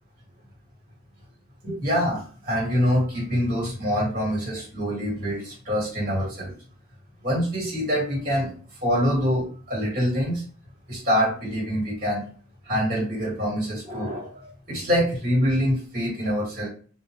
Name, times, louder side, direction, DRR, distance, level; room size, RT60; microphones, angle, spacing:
voice 1, 1.6-6.5 7.2-8.5 8.8-10.4 10.9-12.2 12.7-16.7, equal, 40° right, -5 dB, 1.8 m, -25 dB
3.7 x 2.6 x 3.0 m, 0.41 s
head